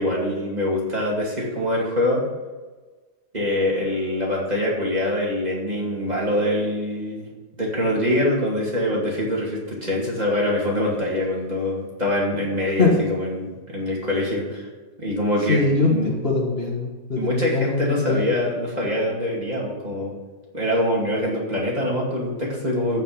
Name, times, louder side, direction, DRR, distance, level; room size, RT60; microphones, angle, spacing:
voice 1, 0.0-2.2 3.3-7.3 7.6-14.7 15.0-16.1 17.1-20.1 20.5-23.0, left 1 dB, 20° right, -4 dB, 2.6 m, -24 dB
voice 2, 15.5-18.3, left 3 dB, 35° left, -2 dB, 1.7 m, -22 dB
15.0 x 5.6 x 5.3 m, 1.3 s
omnidirectional pair, 1.9 m